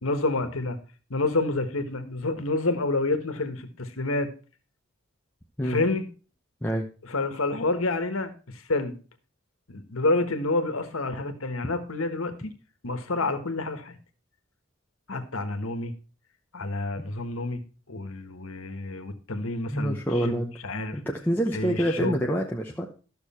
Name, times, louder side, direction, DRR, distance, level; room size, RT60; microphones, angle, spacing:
voice 1, 0.0-0.8 1.1-4.3 5.6-6.0 7.1-9.0 9.7-12.5 12.8-14.0 15.1-15.9 16.5-17.6 17.9-21.0 21.5-22.2, left 2 dB, 85° left, 8 dB, 1.4 m, -28 dB
voice 2, 19.7-20.5 20.9-22.9, equal, 10° left, -1 dB, 0.8 m, -26 dB
12.5 x 6.6 x 4.2 m, 0.35 s
head